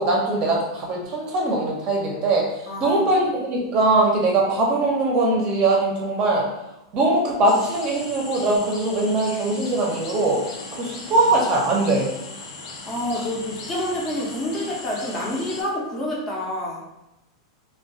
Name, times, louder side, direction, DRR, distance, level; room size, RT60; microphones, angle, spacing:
voice 1, 0.0-2.4 2.8-6.5 6.9-10.4 10.7-12.1, right 2 dB, 30° right, -2 dB, 0.6 m, -21 dB
voice 2, 2.7-3.0 12.9-16.8, left 1 dB, 20° left, -4 dB, 0.6 m, -28 dB
sound 1, 7.4-15.6, left 3 dB, 65° left, 0.5 m, -38 dB
2.2 x 2.2 x 2.6 m, 0.89 s
supercardioid pair, 140°, 3 cm